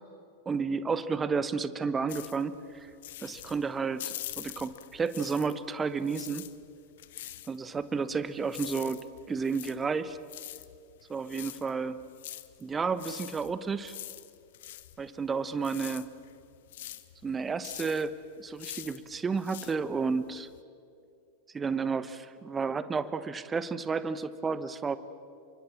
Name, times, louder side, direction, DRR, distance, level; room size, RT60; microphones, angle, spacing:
voice 1, 0.5-2.9 3.2-6.5 7.5-9.0 9.3-10.2 11.1-12.0 12.6-13.9 15.0-16.1 17.2-18.1 18.4-20.5 21.5-25.0, right 5 dB, 15° right, 14 dB, 1.1 m, -31 dB
sound 1, 2.1-5.7 6.0-20.6, left 14 dB, 55° left, 1.0 m, -45 dB
28.0 x 24.0 x 7.4 m, 2.5 s
figure-of-eight pair, 90°, 0 cm